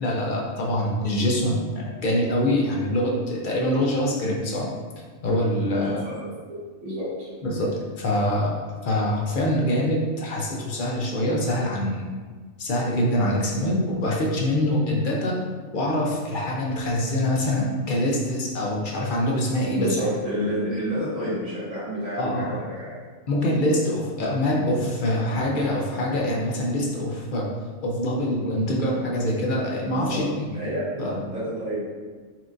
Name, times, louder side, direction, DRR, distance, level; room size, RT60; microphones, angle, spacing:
voice 1, 0.0-4.7 5.2-6.0 7.4-7.7 8.0-8.5 8.8-12.1 12.6-15.4 15.7-20.1 22.2-22.6 23.3-27.5 27.8-30.5 31.0-31.2, left 1 dB, 55° left, -3 dB, 0.6 m, -24 dB
voice 2, 5.7-6.2 6.8-7.3 19.7-23.0 29.8-30.2 30.5-31.8, equal, 65° right, -12 dB, 1.9 m, -29 dB
4.3 x 2.4 x 2.5 m, 1.5 s
omnidirectional pair, 1.3 m